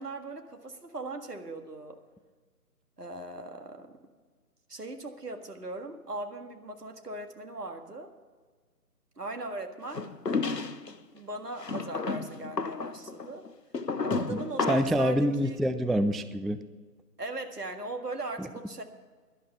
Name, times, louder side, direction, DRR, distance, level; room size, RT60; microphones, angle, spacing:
voice 1, 0.0-2.0 3.0-4.0 4.7-8.1 9.2-10.0 11.1-13.4 14.0-15.6 17.2-18.8, right 2 dB, 75° right, 5 dB, 1.8 m, -39 dB
Plastic chair knocked over, 9.9-10.9 11.6-15.0, left 4 dB, 90° left, 0.9 m, -32 dB
voice 2, 14.7-16.6 18.4-18.5, equal, ahead, 11 dB, 0.3 m, -26 dB
11.5 x 11.0 x 6.8 m, 1.5 s
figure-of-eight pair, 150°, 48 cm